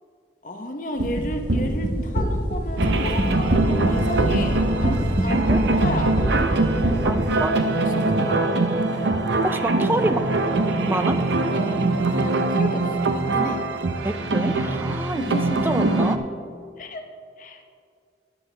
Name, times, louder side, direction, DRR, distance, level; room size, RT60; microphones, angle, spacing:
voice 1, 0.4-5.5 5.8-6.2 6.7-7.1 7.9-8.7 12.2-13.7 15.1-15.9 16.8-17.1 17.4-17.6, left 1 dB, 45° left, 5 dB, 0.8 m, -32 dB
sound 1, 1.0-7.1, right 1 dB, 70° right, 1.5 m, -23 dB
sound 2, 2.8-16.2, right 2 dB, 90° right, 0.7 m, -23 dB
voice 2, 7.0-7.6 9.4-10.3 10.9-11.2 14.0-15.2 15.6-16.2, right 1 dB, 10° right, 10 dB, 0.4 m, -27 dB
12.5 x 10.5 x 3.3 m, 2.3 s
head